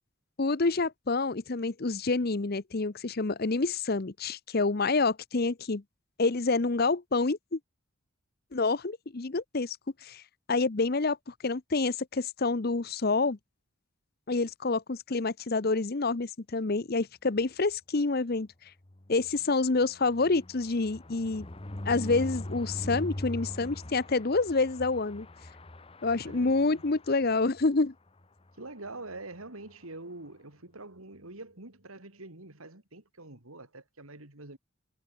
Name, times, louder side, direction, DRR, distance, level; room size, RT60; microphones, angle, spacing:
voice 1, 0.4-5.8 6.2-7.6 8.5-9.8 10.0-10.2 10.5-13.4 14.3-18.5 19.1-21.5 21.9-25.3 26.0-27.9, left 3 dB, 45° left, 0.8 m, -28 dB
sound 1, 18.8-27.6 28.1-28.2 28.5-28.6 28.9-29.1, left 1 dB, 25° left, 1.1 m, -41 dB
voice 2, 26.2-26.8 28.6-34.6, right 2 dB, 80° right, 3.7 m, -45 dB
head